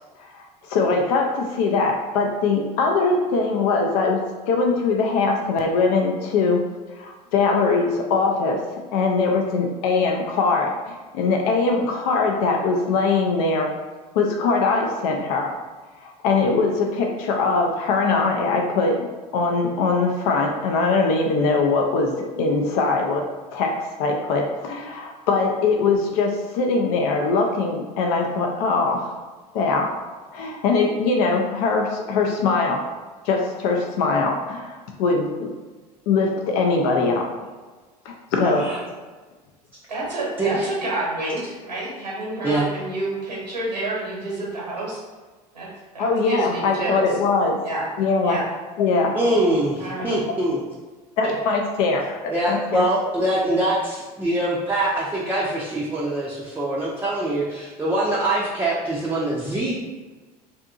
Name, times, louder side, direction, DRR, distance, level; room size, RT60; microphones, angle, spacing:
voice 1, 0.2-6.6 7.0-8.6 8.9-13.7 14.2-15.5 16.0-19.1 19.3-23.3 23.5-23.7 24.0-29.2 29.5-30.0 30.3-32.8 33.2-35.5 36.1-37.3 38.1-38.6 46.0-47.6 48.0-48.4 48.8-49.1 51.2-52.9, left 4 dB, 60° left, 2 dB, 0.5 m, -22 dB
voice 2, 38.4-38.8 40.4-40.7 42.4-42.7 49.1-50.6 51.2-51.3 52.3-59.7, right 1 dB, 10° right, -6 dB, 0.5 m, -23 dB
voice 3, 39.9-45.0 45.5-45.7 45.9-47.1 47.6-47.8 48.2-48.4 49.8-50.1, right 2 dB, 90° right, -6 dB, 1.1 m, -29 dB
2.6 x 2.5 x 2.3 m, 1.3 s
hypercardioid pair, 70°, 21 cm